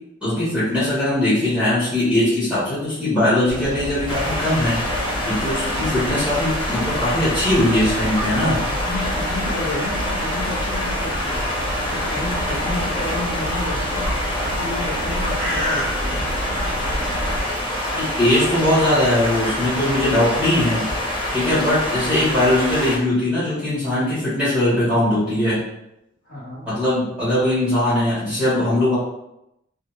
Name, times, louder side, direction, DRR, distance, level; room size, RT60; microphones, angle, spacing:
voice 1, 0.2-4.8 5.3-8.6 17.9-20.9 21.3-25.6 26.6-29.0, left 1 dB, 5° right, -12 dB, 1.3 m, -20 dB
sound 1, 3.5-17.4, equal, 65° right, 0.9 m, -29 dB
sound 2, 4.1-23.0, left 1 dB, 25° left, 0.5 m, -26 dB
voice 2, 8.4-16.3 26.2-26.8, left 2 dB, 90° left, -9 dB, 1.0 m, -32 dB
2.8 x 2.6 x 2.3 m, 0.85 s
head